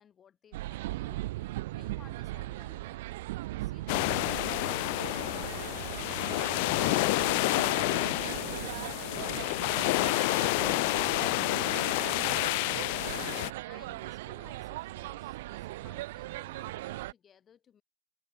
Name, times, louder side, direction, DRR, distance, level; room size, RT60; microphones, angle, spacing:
voice 1, 0.0-1.5 1.7-5.4 13.6-17.8, left 8 dB, 25° left, 4.7 m, -59 dB
sound 1, 0.5-17.1, right 18 dB, 55° right, 0.9 m, -39 dB
sound 2, 3.9-13.5, left 27 dB, 50° left, 0.4 m, -29 dB
voice 2, 7.5-9.6, left 9 dB, 65° left, 2.1 m, -53 dB
figure-of-eight pair, 90°, 0 cm